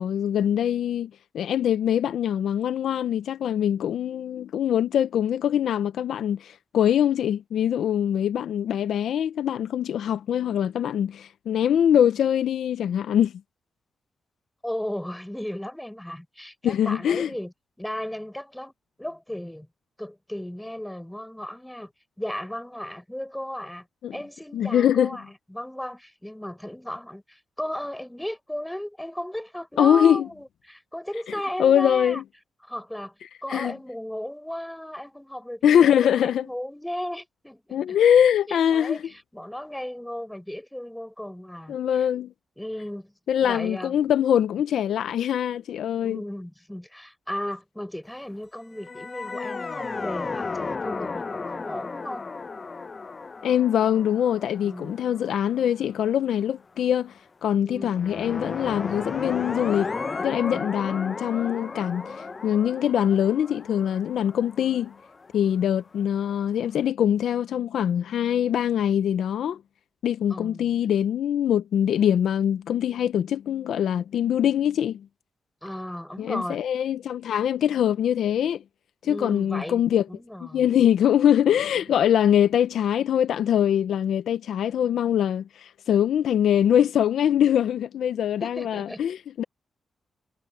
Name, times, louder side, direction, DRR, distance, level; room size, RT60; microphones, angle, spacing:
voice 1, 0.0-13.3 16.6-17.3 24.0-24.2 24.5-25.2 29.8-30.3 31.6-32.2 33.5-33.7 35.6-36.5 37.7-39.0 41.7-42.3 43.3-46.2 53.4-57.1 57.4-59.9 60.2-64.9 65.3-69.6 70.0-75.1 76.2-78.6 79.0-80.1 80.4-89.4, left 9 dB, 85° left, 0.6 m, -23 dB
voice 2, 14.6-18.7 19.0-19.7 20.0-21.9 22.2-23.9 24.1-32.2 32.6-33.1 33.4-38.0 38.5-42.1 42.6-43.1 43.4-44.0 46.0-52.2 54.6-55.0 57.6-57.9 60.5-60.7 70.3-70.7 75.6-76.6 79.0-80.7 88.4-89.0, left 1 dB, 5° left, 6.2 m, -35 dB
sound 1, 48.7-56.0 57.9-65.7, left 4 dB, 35° left, 0.6 m, -34 dB
cardioid pair, 100°, 0 cm